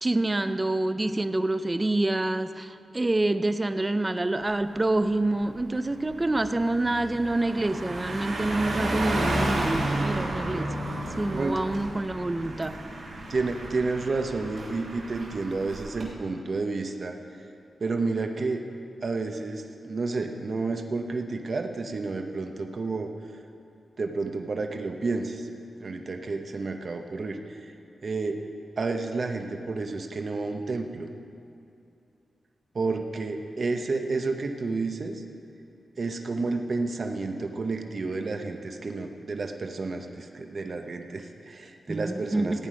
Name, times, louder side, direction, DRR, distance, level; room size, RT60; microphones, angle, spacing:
voice 1, 0.0-10.8 11.2-12.8 41.9-42.6, right 2 dB, 20° right, 11 dB, 0.5 m, -27 dB
Car passing by, 4.5-4.7 5.1-16.1, right 1 dB, 75° right, 3.1 m, -32 dB
voice 2, 11.3-11.7 13.3-17.1 17.8-18.6 19.0-23.1 24.0-25.5 25.8-27.7 28.0-28.4 28.8-31.1 32.7-35.2 36.0-42.7, right 3 dB, 50° right, 5 dB, 0.8 m, -30 dB
15.5 x 9.3 x 5.1 m, 2.6 s
wide cardioid pair, 100°, 0 cm